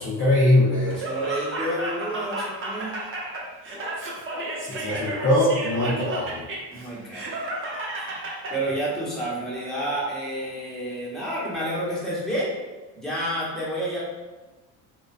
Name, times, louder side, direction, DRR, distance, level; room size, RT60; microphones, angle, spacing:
voice 1, 0.0-1.0 4.7-6.4, left 1 dB, 30° left, -7 dB, 0.6 m, -21 dB
Laughter, 0.9-8.6, right 1 dB, 35° right, 0.7 m, -32 dB
voice 2, 1.0-2.9 6.7-7.4 8.1-8.2 8.5-12.5 13.0-14.0, right 1 dB, ahead, -7 dB, 1.0 m, -29 dB
2.4 x 2.1 x 2.4 m, 1.2 s
supercardioid pair, 85°, 38 cm